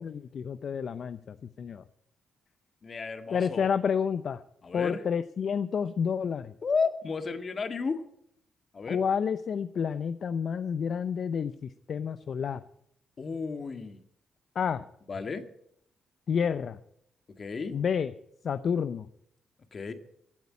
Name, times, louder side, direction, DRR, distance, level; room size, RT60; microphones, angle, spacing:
voice 1, 0.0-1.8 3.3-4.4 4.7-6.5 8.9-11.5 11.9-12.6 14.5-14.8 16.3-16.8 17.7-18.1 18.4-19.1, left 7 dB, 60° left, 13 dB, 0.6 m, -29 dB
voice 2, 2.8-3.7 4.6-5.0 6.6-8.0 8.7-9.0 13.2-14.0 15.1-15.4 17.4-17.7 19.7-19.9, left 4 dB, 45° left, 8 dB, 1.9 m, -32 dB
15.5 x 9.1 x 8.5 m, 0.74 s
cardioid pair, 65°, 0 cm